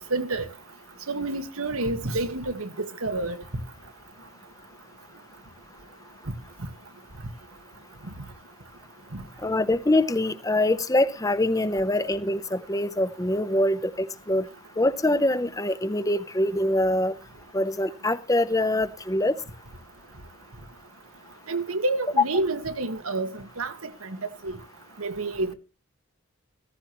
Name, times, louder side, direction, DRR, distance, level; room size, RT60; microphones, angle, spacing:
voice 1, 0.1-0.4 1.1-2.7 3.0-3.4 9.1-9.2 21.5-23.7 24.0-24.2 24.4-24.5 25.0-25.5, right 2 dB, 90° right, 1.6 m, -28 dB
voice 2, 9.4-14.5 14.8-17.1 17.5-19.3, left 1 dB, 15° left, 0.7 m, -24 dB
15.0 x 14.5 x 3.1 m
head